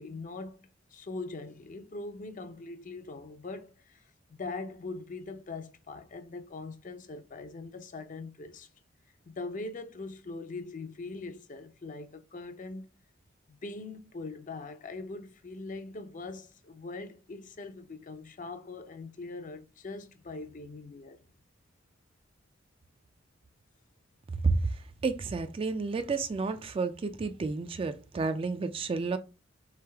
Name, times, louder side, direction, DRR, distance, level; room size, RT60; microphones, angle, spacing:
voice 1, 0.0-4.0 4.3-8.7 9.3-12.8 13.5-21.2, left 3 dB, 40° left, 0.5 m, -42 dB
voice 2, 24.4-29.2, right 4 dB, 30° right, 0.3 m, -31 dB
3.8 x 3.3 x 3.3 m
head